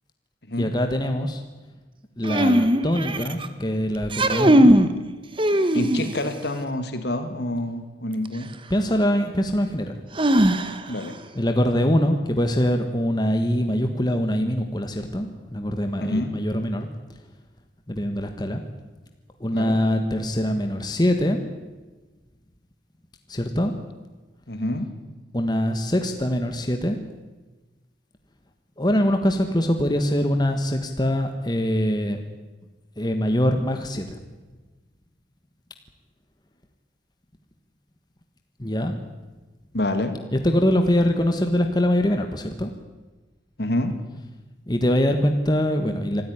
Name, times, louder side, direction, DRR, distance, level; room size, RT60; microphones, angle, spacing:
voice 1, 0.6-1.4 2.2-4.7 8.7-10.0 11.3-16.9 17.9-18.6 19.4-21.4 23.3-23.7 25.3-27.0 28.8-32.2 33.0-34.2 38.6-39.0 40.3-42.7 44.7-46.2, equal, 20° left, 5 dB, 1.5 m, -23 dB
sound 1, 2.2-3.5 4.0-4.9 5.4-6.3 8.2-8.3 10.2-11.0, right 1 dB, 25° right, 1.3 m, -19 dB
voice 2, 5.7-8.5 10.9-11.2 15.9-16.4 19.5-19.8 24.5-24.9 39.7-40.2 43.6-43.9, left 1 dB, 60° left, 8 dB, 2.4 m, -27 dB
26.0 x 13.5 x 9.9 m, 1.2 s
head